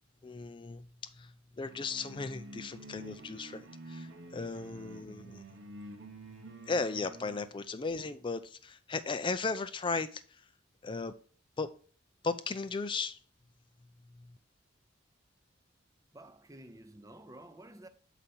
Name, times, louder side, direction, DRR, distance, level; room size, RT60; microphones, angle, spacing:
voice 1, 0.2-0.9 1.1-5.4 6.7-10.4 10.8-11.1 11.6-11.7 12.2-13.2, left 4 dB, 25° left, 0.4 m, -36 dB
sound 1, 1.7-7.5, right 1 dB, 65° right, 1.0 m, -49 dB
voice 2, 16.1-17.9, right 1 dB, 15° right, 0.6 m, -51 dB
6.8 x 5.0 x 4.3 m
head